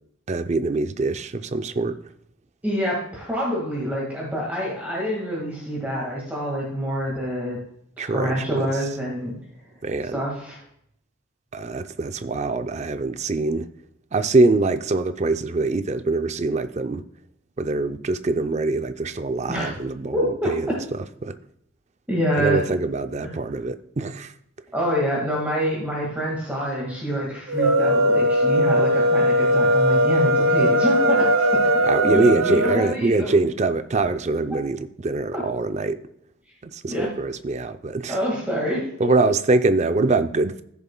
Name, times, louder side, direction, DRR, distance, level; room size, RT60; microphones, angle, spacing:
voice 1, 0.3-1.9 8.0-8.6 9.8-10.2 11.5-13.7 14.1-17.0 17.6-20.2 20.5-21.4 22.4-24.3 31.8-36.0 36.7-38.2 39.0-40.6, right 3 dB, 35° right, 10 dB, 0.5 m, -23 dB
voice 2, 2.6-7.6 8.0-9.3 10.1-10.6 19.5-19.7 20.1-20.8 22.1-22.6 23.2-23.3 24.7-33.3 35.3-35.4 36.9-37.1 38.1-38.9, equal, 10° right, -4 dB, 1.7 m, -26 dB
sound 1, 27.5-32.8, equal, 75° right, 0.8 m, -19 dB
14.0 x 7.0 x 2.2 m, 0.72 s
head